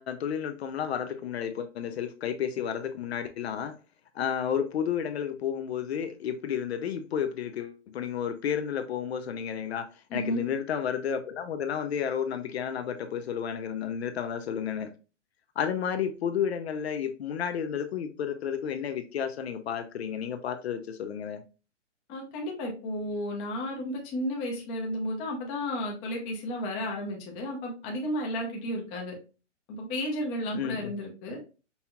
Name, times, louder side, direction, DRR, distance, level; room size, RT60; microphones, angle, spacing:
voice 1, 0.0-3.7 4.1-14.9 15.6-21.4 30.5-30.9, left 8 dB, 60° left, 0.6 m, -32 dB
voice 2, 10.1-10.4 22.1-29.1 29.7-31.4, left 1 dB, 15° left, 0.6 m, -33 dB
5.4 x 2.9 x 2.2 m
hypercardioid pair, 155°, 36 cm